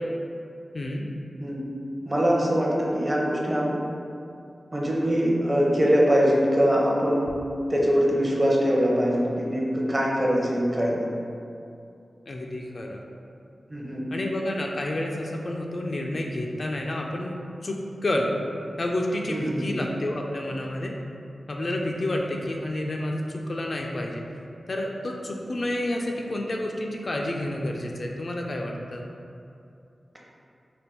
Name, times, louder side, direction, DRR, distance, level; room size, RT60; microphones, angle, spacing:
voice 1, 0.7-1.1 12.3-13.0 14.1-17.3 17.6-18.3 18.8-21.0 21.5-24.2 24.7-29.0, left 1 dB, 50° left, 0 dB, 0.3 m, -29 dB
voice 2, 2.1-3.8 4.7-7.3 7.7-11.0 13.7-14.0 19.3-19.6, equal, 25° right, -4 dB, 0.7 m, -23 dB
3.4 x 2.2 x 4.3 m, 2.6 s
wide cardioid pair, 85°, 0 cm